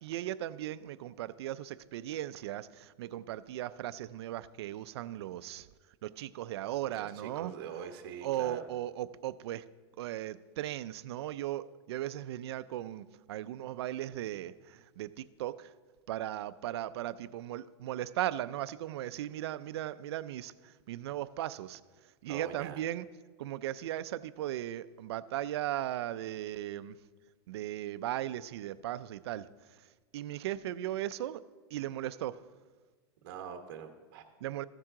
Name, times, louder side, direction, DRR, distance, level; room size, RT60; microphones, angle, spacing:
voice 1, 0.0-5.7 6.0-7.5 8.2-9.7 10.0-15.7 16.1-23.1 23.4-27.0 27.5-31.4 31.7-32.4 34.4-34.6, right 13 dB, 75° right, 0.4 m, -37 dB
voice 2, 7.3-8.6 22.3-22.8 33.2-34.2, right 7 dB, 50° right, 1.1 m, -43 dB
14.5 x 7.4 x 3.7 m
supercardioid pair, 175°, 14 cm